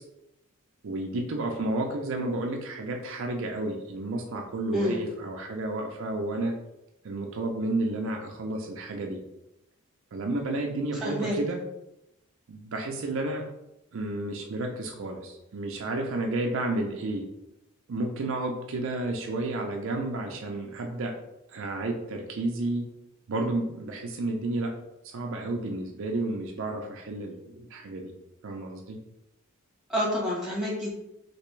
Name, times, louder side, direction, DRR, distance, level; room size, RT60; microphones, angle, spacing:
voice 1, 0.8-6.5 7.0-9.2 10.1-11.6 12.5-13.4 13.9-17.3 17.9-21.1 21.5-22.9 23.3-24.7 25.1-28.1 28.4-29.0, right 2 dB, 60° right, 2 dB, 0.4 m, -31 dB
voice 2, 11.0-11.4 29.9-30.9, equal, ahead, -4 dB, 1.1 m, -28 dB
3.3 x 2.9 x 3.1 m, 0.88 s
head